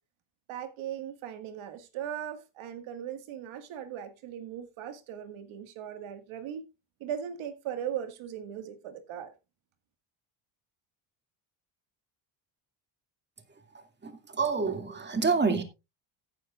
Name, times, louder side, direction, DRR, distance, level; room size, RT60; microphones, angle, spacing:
voice 1, 0.5-6.7 7.0-9.3, right 9 dB, 80° right, 1.9 m, -38 dB
voice 2, 14.0-15.6, right 4 dB, 20° right, 2.3 m, -27 dB
15.0 x 9.6 x 2.4 m
cardioid pair, 110°, 48 cm